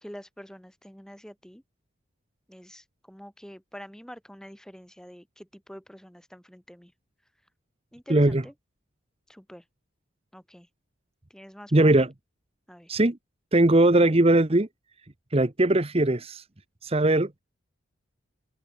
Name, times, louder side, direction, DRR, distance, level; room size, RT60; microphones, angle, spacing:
voice 1, 0.0-1.6 2.5-6.9 7.9-8.5 9.3-9.6 10.3-10.7 11.3-12.1 12.7-12.9, equal, 5° left, 3.4 m, -46 dB
voice 2, 8.1-8.4 11.7-12.1 12.9-13.2 13.5-14.7 15.3-16.4 16.8-17.3, right 1 dB, 30° right, 1.0 m, -20 dB
open air
head